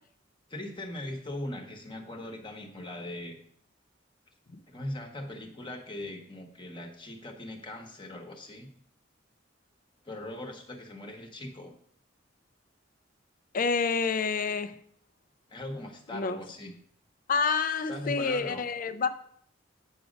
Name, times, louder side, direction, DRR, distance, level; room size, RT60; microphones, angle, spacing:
voice 1, 0.5-3.4 4.7-8.7 10.0-11.7 15.5-16.7 17.9-18.6, left 1 dB, 25° left, 1.1 m, -40 dB
voice 2, 13.5-14.8 16.1-16.4 17.3-19.1, left 5 dB, 45° left, 0.5 m, -28 dB
9.0 x 6.2 x 5.1 m
head